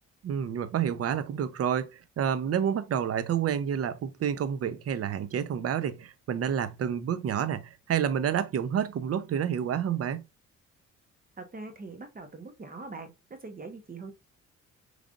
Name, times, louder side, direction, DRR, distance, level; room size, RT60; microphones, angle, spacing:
voice 1, 0.2-10.2, right 8 dB, 50° right, 0.7 m, -29 dB
voice 2, 11.4-14.1, right 3 dB, 30° right, 1.0 m, -42 dB
5.0 x 3.3 x 2.5 m
cardioid pair, 90°, 30 cm